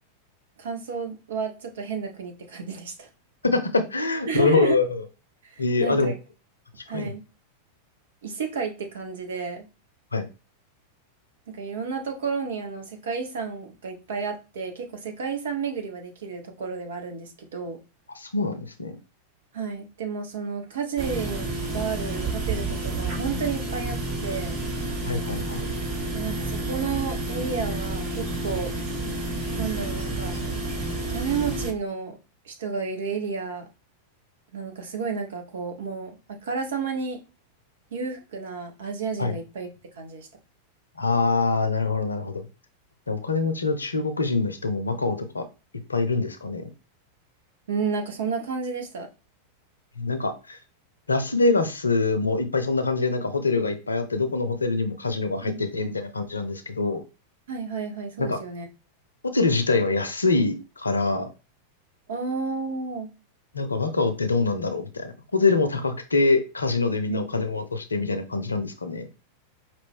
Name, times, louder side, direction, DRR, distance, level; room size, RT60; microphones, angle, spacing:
voice 1, 0.6-3.1 4.3-4.8 5.4-6.2 6.9-7.2 8.2-9.7 11.5-17.8 19.5-24.6 26.1-28.7 29.6-30.3 31.1-32.2 32.4-33.7 34.5-37.2 37.9-39.7 40.0-40.3 47.7-49.1 55.4-55.9 57.5-58.7 62.1-63.1 67.0-67.3, right 5 dB, 60° right, 4 dB, 1.1 m, -31 dB
voice 2, 3.4-5.0 5.6-6.1 6.9-7.1 10.1-10.3 18.1-19.0 25.0-25.7 39.2-39.3 41.0-42.4 43.1-45.4 45.9-46.7 50.0-50.6 51.1-57.0 58.2-58.4 59.3-61.3 63.5-69.0, left 3 dB, 75° left, 8 dB, 0.7 m, -24 dB
sound 1, 21.0-31.7, right 2 dB, 40° right, 2.0 m, -30 dB
5.2 x 2.6 x 3.6 m, 0.30 s
figure-of-eight pair, 90°, 0 cm